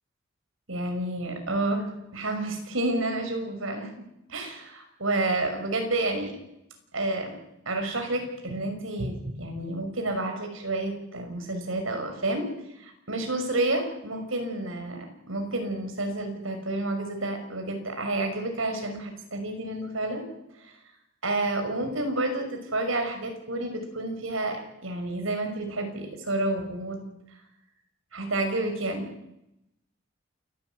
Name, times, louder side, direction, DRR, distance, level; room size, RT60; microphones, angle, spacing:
voice 1, 0.7-3.9 4.3-6.3 6.9-7.3 7.7-12.5 12.8-20.2 20.6-20.7 21.2-27.1 28.1-29.1, right 2 dB, 85° right, 5 dB, 5.9 m, -30 dB
28.5 x 13.0 x 9.4 m, 0.83 s
head